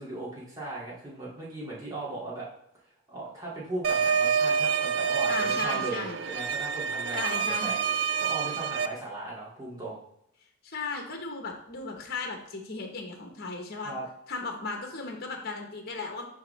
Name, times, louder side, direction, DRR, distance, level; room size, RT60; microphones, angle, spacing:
voice 1, 0.0-2.5 3.1-7.8 8.2-10.0 13.8-14.1, right 2 dB, 15° right, -7 dB, 2.3 m, -37 dB
sound 1, 3.8-8.9, right 6 dB, 60° right, 0.5 m, -27 dB
voice 2, 5.3-6.2 7.1-7.8 10.6-13.9 14.3-16.3, left 3 dB, 50° left, 3 dB, 1.2 m, -36 dB
10.5 x 3.8 x 3.3 m, 0.75 s
head